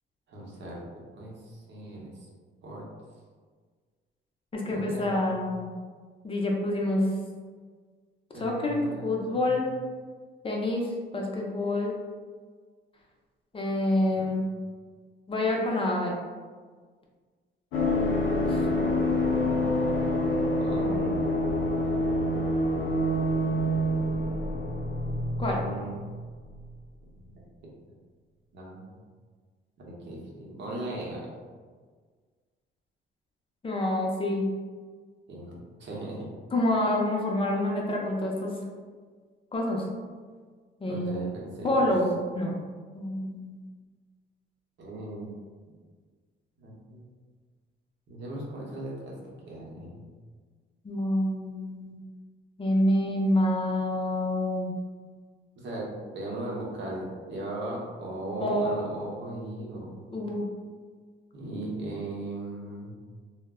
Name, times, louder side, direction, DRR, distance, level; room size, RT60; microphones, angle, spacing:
voice 1, 0.3-0.8 1.1-2.1 2.6-2.9 4.6-5.4 8.3-9.7 14.1-14.2 20.6-21.1 25.4-25.9 27.2-27.4 28.5-28.8 29.9-31.3 35.3-36.3 40.9-41.9 44.8-45.3 46.6-47.0 48.1-49.2 49.4-50.1 55.6-55.9 56.1-60.1 61.3-62.9, right 1 dB, 65° right, -4 dB, 0.8 m, -38 dB
voice 2, 4.5-5.7 6.2-7.1 8.4-9.6 10.4-10.9 11.1-12.0 13.5-14.4 15.3-16.1 18.3-18.6 25.4-25.6 33.6-34.4 36.5-38.5 39.5-39.8 40.8-41.3 41.6-42.5 42.9-43.6 50.8-52.0 52.6-54.7 58.4-58.7 60.1-60.5, left 1 dB, 25° left, -1 dB, 0.5 m, -27 dB
sound 1, 17.7-26.2 26.5-26.6, left 1 dB, 85° left, 0.6 m, -27 dB
2.1 x 2.0 x 3.5 m, 1.5 s
cardioid pair, 90°, 20 cm